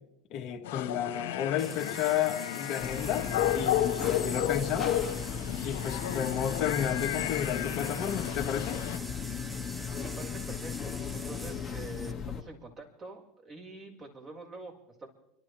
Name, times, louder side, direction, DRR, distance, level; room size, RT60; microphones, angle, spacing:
voice 1, 0.3-5.0 5.6-8.8, left 9 dB, 55° left, 3 dB, 1.7 m, -32 dB
sound 1, 0.6-9.0, left 12 dB, 80° left, 1.5 m, -33 dB
sound 2, 1.6-12.1, right 1 dB, 15° right, 1.1 m, -45 dB
sound 3, 2.8-12.4, left 7 dB, 25° left, 1.9 m, -37 dB
voice 2, 10.0-14.7 15.0-15.1, right 2 dB, 30° right, -2 dB, 4.9 m, -45 dB
30.0 x 12.5 x 3.4 m, 0.86 s
supercardioid pair, 100°, 0 cm